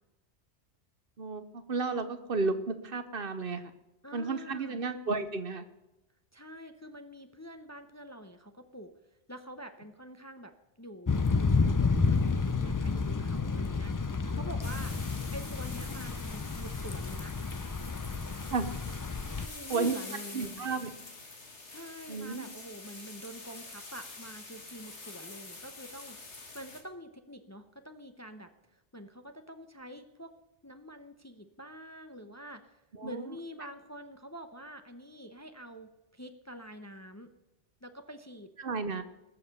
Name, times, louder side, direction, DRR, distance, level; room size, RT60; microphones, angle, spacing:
voice 1, 1.2-3.7 4.1-5.6 18.5-18.7 19.7-19.9 20.3-20.9 22.1-22.5 33.0-33.2 38.6-39.0, right 4 dB, 55° right, 11 dB, 1.0 m, -32 dB
voice 2, 4.0-4.8 6.3-8.9 9.3-10.5 10.8-14.9 15.3-17.3 19.4-20.7 21.7-30.3 30.6-37.3 37.8-38.5, equal, 15° left, 7 dB, 0.8 m, -46 dB
Thunder / Rain, 11.1-19.5, left 4 dB, 30° left, 0.3 m, -30 dB
sound 1, 14.6-26.8, left 3 dB, 75° left, 2.3 m, -46 dB
19.5 x 7.2 x 6.8 m, 0.96 s
omnidirectional pair, 1.2 m